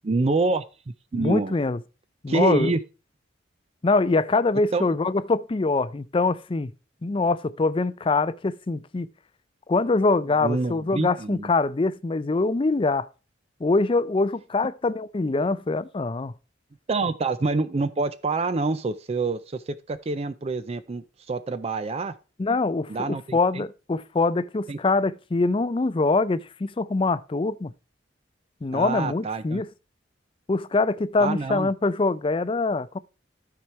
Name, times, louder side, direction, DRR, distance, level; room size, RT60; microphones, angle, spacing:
voice 1, 0.0-0.6 1.1-1.6 2.3-2.8 4.7-4.8 10.4-11.5 16.9-22.1 22.9-23.6 24.7-24.8 28.7-29.6 31.2-31.7, right 3 dB, 35° right, 0.4 m, -26 dB
voice 2, 1.1-1.8 2.2-2.7 3.8-6.7 7.0-9.1 9.7-13.1 13.6-16.3 22.4-27.7 28.6-29.7 30.5-33.0, left 3 dB, 30° left, 0.4 m, -24 dB
12.5 x 4.9 x 4.3 m
head